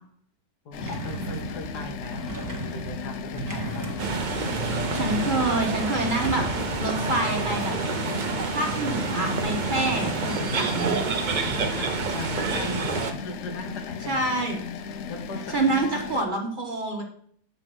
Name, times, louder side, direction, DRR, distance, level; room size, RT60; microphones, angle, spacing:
voice 1, 0.7-3.9 9.9-10.5 11.7-14.5 15.1-15.8, left 2 dB, 90° left, 4 dB, 1.8 m, -38 dB
sound 1, 0.7-16.2, left 6 dB, 65° left, 0.7 m, -36 dB
sound 2, 0.8-6.8, right 2 dB, 15° right, 1.1 m, -36 dB
sound 3, 4.0-13.1, right 4 dB, 55° right, 0.5 m, -28 dB
voice 2, 4.7-6.4 6.8-7.7 8.5-11.0 14.1-14.6 15.5-17.0, right 2 dB, 35° right, 2 dB, 1.2 m, -27 dB
7.9 x 4.3 x 6.0 m, 0.63 s
omnidirectional pair, 1.7 m